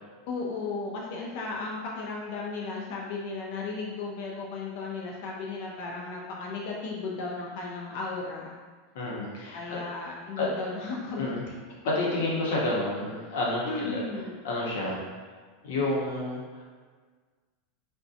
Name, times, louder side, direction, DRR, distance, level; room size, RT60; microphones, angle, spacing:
voice 1, 0.3-8.6 9.5-11.3 13.6-14.5, left 3 dB, 60° left, -2 dB, 0.4 m, -35 dB
voice 2, 8.9-9.8 10.4-10.5 11.1-11.4 12.0-14.0 14.4-15.0 15.6-16.6, left 2 dB, 80° left, -4 dB, 0.8 m, -30 dB
2.6 x 2.2 x 2.5 m, 1.5 s
supercardioid pair, 135°, 0 cm